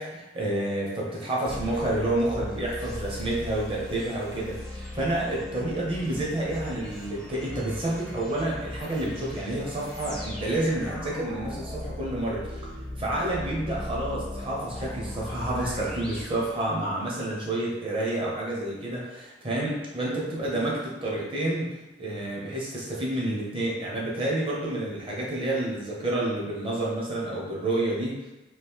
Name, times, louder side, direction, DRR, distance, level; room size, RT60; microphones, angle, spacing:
voice 1, 0.0-12.6 13.0-21.7 22.0-28.2, right 1 dB, 30° right, -4 dB, 0.8 m, -29 dB
sound 1, 1.5-17.1, left 1 dB, 5° left, 0.5 m, -38 dB
3.1 x 2.4 x 3.5 m, 1.0 s
head